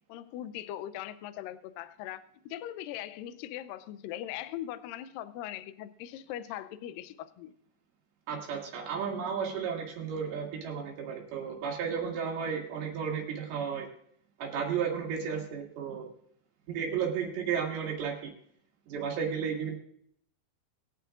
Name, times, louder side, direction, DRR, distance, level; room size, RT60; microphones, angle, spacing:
voice 1, 0.1-7.5, left 12 dB, 80° left, 13 dB, 2.1 m, -40 dB
voice 2, 8.3-13.9 14.4-16.1 16.7-18.3 18.9-19.7, right 7 dB, 85° right, 0 dB, 4.0 m, -33 dB
21.5 x 9.2 x 2.5 m, 0.66 s
omnidirectional pair, 4.4 m